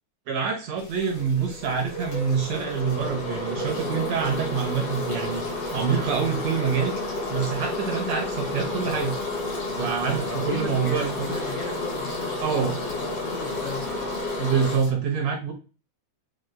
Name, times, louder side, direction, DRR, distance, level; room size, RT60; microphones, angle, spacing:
voice 1, 0.3-7.0 7.3-9.1 9.8-11.1 12.4-12.8 14.4-15.5, right 6 dB, 70° right, 3 dB, 1.9 m, -26 dB
sound 1, 0.8-14.9, left 3 dB, 90° left, 3.3 m, -45 dB
sound 2, 1.2-14.8, left 2 dB, 50° left, 1.0 m, -31 dB
voice 2, 8.7-9.0 10.2-14.1, left 4 dB, 75° left, -1 dB, 1.4 m, -37 dB
7.4 x 2.5 x 2.5 m, 0.33 s
omnidirectional pair, 3.5 m